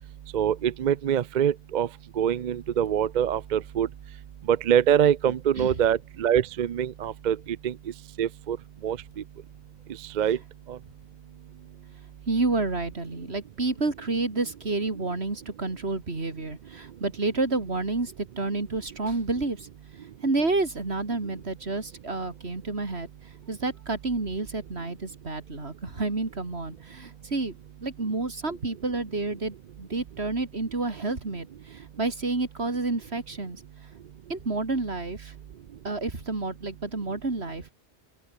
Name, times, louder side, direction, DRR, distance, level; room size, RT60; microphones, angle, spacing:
voice 1, 0.3-1.9 2.2-3.9 4.5-7.7 8.2-8.6 8.8-9.0 10.2-10.4 10.7-10.8, right 9 dB, 55° right, 0.6 m, -24 dB
voice 2, 12.3-19.7 20.2-23.1 23.5-27.5 27.8-33.6 34.3-35.3 35.8-37.7, right 3 dB, 70° right, 3.4 m, -29 dB
open air
omnidirectional pair, 1.1 m